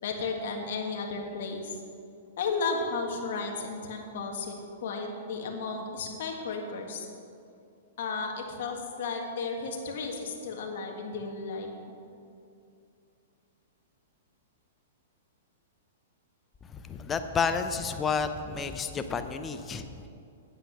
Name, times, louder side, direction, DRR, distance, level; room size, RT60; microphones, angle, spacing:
voice 1, 0.0-1.8 2.4-4.5 4.8-7.0 8.0-11.7, left 4 dB, 60° left, 1 dB, 1.8 m, -33 dB
voice 2, 16.7-20.1, left 5 dB, 15° left, 9 dB, 0.5 m, -31 dB
9.4 x 8.6 x 6.0 m, 2.6 s
hypercardioid pair, 155°, 0 cm